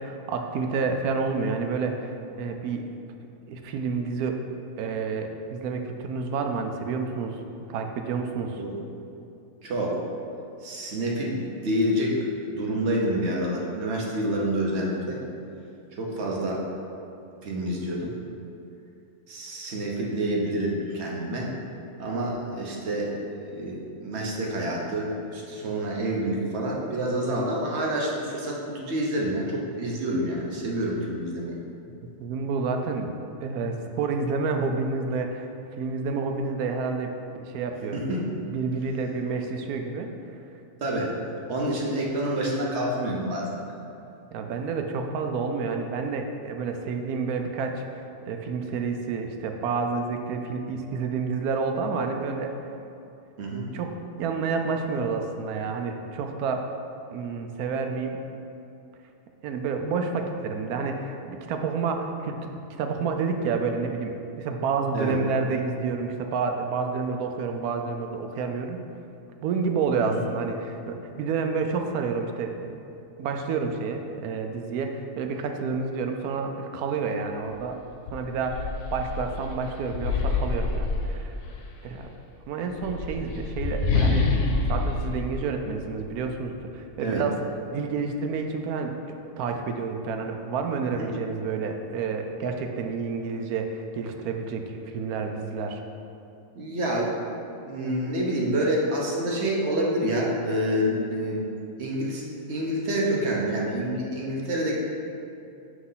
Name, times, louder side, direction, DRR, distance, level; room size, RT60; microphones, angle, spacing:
voice 1, 0.0-2.1 2.4-2.9 3.5-4.4 4.8-7.4 7.7-8.6 32.2-33.1 33.4-35.5 35.8-38.0 38.5-40.1 44.3-52.5 53.7-53.9 54.2-56.7 57.1-58.2 59.4-62.5 62.8-68.8 69.4-72.7 73.2-77.8 78.1-81.3 81.8-82.1 82.5-84.3 84.7-87.4 87.7-88.9 89.2-95.8, right 4 dB, 75° right, 5 dB, 1.0 m, -29 dB
voice 2, 9.6-10.0 10.6-12.2 12.5-15.2 16.0-16.6 17.4-18.1 19.3-21.5 22.0-31.6 37.9-38.4 40.8-41.1 41.5-43.7 53.4-53.7 64.9-65.2 70.0-70.3 87.0-87.2 90.9-91.1 96.5-101.4 101.8-102.2 102.5-104.7, right 1 dB, 50° right, -3 dB, 1.1 m, -28 dB
sound 1, 77.5-77.6 78.0-81.7 82.6-86.3, left 3 dB, 70° left, 1.0 m, -27 dB
5.9 x 3.1 x 5.6 m, 2.7 s
omnidirectional pair, 1.6 m